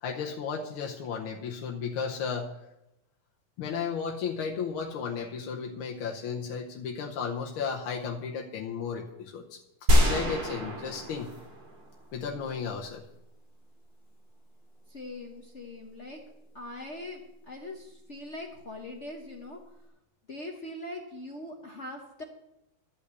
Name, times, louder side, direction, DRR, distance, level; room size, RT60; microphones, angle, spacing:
voice 1, 0.0-2.5 3.6-9.6 9.9-11.3 12.1-13.1, left 6 dB, 75° left, 0 dB, 1.8 m, -34 dB
sound 1, 9.9-12.2, equal, 55° right, 2.6 m, -25 dB
voice 2, 14.9-16.2 16.5-19.6 20.3-22.2, left 1 dB, 45° left, 1 dB, 1.0 m, -41 dB
12.0 x 5.7 x 8.1 m, 0.88 s
omnidirectional pair, 2.4 m